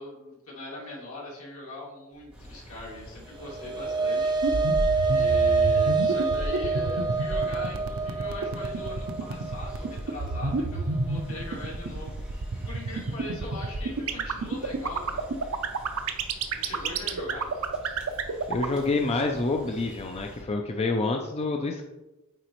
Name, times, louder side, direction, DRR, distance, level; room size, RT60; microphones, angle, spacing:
voice 1, 0.0-4.3 5.0-15.3 16.5-17.5, left 2 dB, 70° left, -4 dB, 2.3 m, -41 dB
sound 1, 2.3-20.4, equal, 5° right, 1.5 m, -46 dB
sound 2, 3.2-11.8, right 4 dB, 20° right, 0.7 m, -27 dB
sound 3, 4.4-18.8, right 4 dB, 70° right, 0.6 m, -28 dB
voice 2, 18.5-21.9, left 3 dB, 30° left, 2 dB, 0.4 m, -27 dB
9.0 x 4.0 x 3.1 m, 1.0 s
head